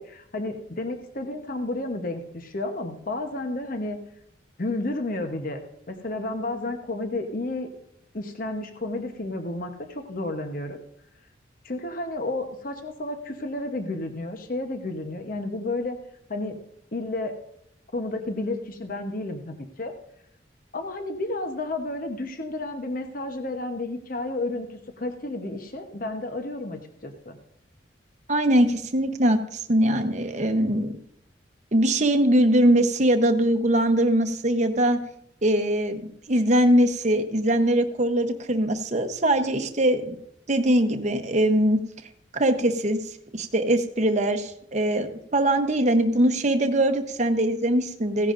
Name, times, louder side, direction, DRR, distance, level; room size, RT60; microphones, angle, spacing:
voice 1, 0.0-4.0 4.6-5.6 5.9-7.7 8.1-10.8 11.6-16.0 16.3-16.6 16.9-17.3 17.9-19.9 20.7-27.4, left 2 dB, 45° left, 6 dB, 0.9 m, -31 dB
voice 2, 28.3-31.0 31.7-35.0 35.4-40.2 40.5-41.8 42.3-43.0 43.3-48.3, right 1 dB, 40° right, 6 dB, 0.9 m, -22 dB
16.0 x 10.5 x 2.5 m, 0.73 s
head